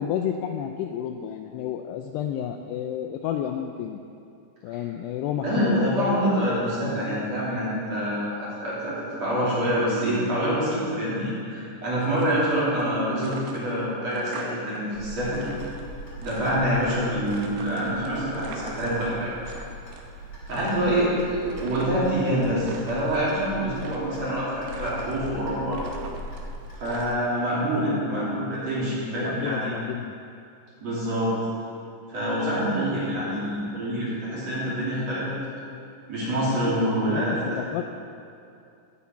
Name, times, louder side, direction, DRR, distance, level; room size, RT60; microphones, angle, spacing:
voice 1, 0.0-4.0 4.6-6.2 28.0-28.3 29.1-30.1 33.1-33.3 37.1-37.2 37.6-37.8, left 9 dB, 90° left, 5 dB, 2.3 m, -31 dB
voice 2, 5.4-15.5 16.2-19.3 20.5-25.8 26.8-29.7 30.8-31.3 32.1-35.3 36.1-37.4, equal, 40° right, -9 dB, 3.7 m, -26 dB
sound 1, 12.0-12.9 13.2-14.8 15.1-16.9 17.3-19.6 19.9-20.2 20.5-22.1 22.5-23.2 23.7-24.4 24.7-25.4 25.7-27.5, right 5 dB, 70° right, 2.3 m, -43 dB
Clock, 14.9-27.1, right 1 dB, 30° left, 2.5 m, -40 dB
17.0 x 8.3 x 4.5 m, 2.5 s
omnidirectional pair, 5.3 m